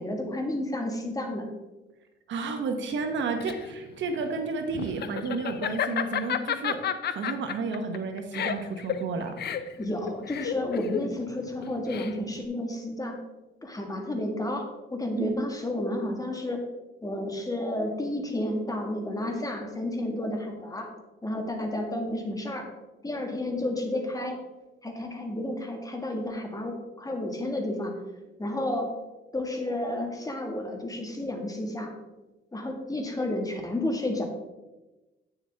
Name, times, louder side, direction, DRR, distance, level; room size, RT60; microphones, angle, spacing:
voice 1, 0.0-1.5 9.8-13.2 13.6-16.6 17.0-20.9 21.2-22.7 23.0-24.4 24.8-27.9 28.4-28.9 29.3-31.9 32.5-34.2, left 1 dB, 15° left, 3 dB, 1.7 m, -31 dB
voice 2, 2.3-6.8 7.0-9.6 15.2-15.3, right 4 dB, 70° right, 6 dB, 1.2 m, -31 dB
Laughter, 3.0-12.4, left 9 dB, 55° left, 0.7 m, -32 dB
9.1 x 7.0 x 3.5 m, 1.1 s
cardioid pair, 90°, 20 cm